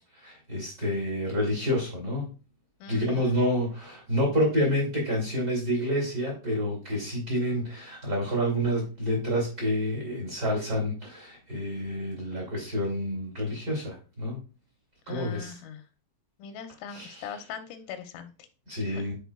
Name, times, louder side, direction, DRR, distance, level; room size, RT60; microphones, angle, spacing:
voice 1, 0.1-2.3 2.9-14.4 15.1-15.6 16.9-17.3 18.7-19.1, equal, 45° right, -2 dB, 1.2 m, -28 dB
voice 2, 2.8-3.4 15.1-15.8 16.4-18.5 18.9-19.1, left 8 dB, 85° left, 7 dB, 3.3 m, -41 dB
10.5 x 4.6 x 2.3 m, 0.34 s
omnidirectional pair, 5.7 m